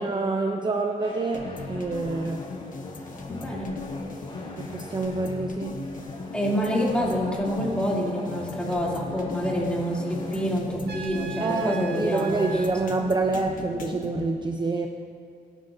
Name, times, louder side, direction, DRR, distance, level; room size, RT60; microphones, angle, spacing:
voice 1, 0.0-2.4 4.6-5.8 11.4-14.9, right 3 dB, 25° right, 3 dB, 0.7 m, -27 dB
sound 1, 1.0-10.5, left 1 dB, 30° left, 3.6 m, -44 dB
sound 2, 1.3-14.3, left 3 dB, 55° left, 1.2 m, -38 dB
voice 2, 3.3-3.7 6.3-12.6, equal, 5° left, -5 dB, 3.2 m, -27 dB
Trumpet, 10.9-12.9, right 6 dB, 90° right, 1.2 m, -39 dB
24.5 x 10.5 x 2.8 m, 2.3 s
cardioid pair, 110°, 17 cm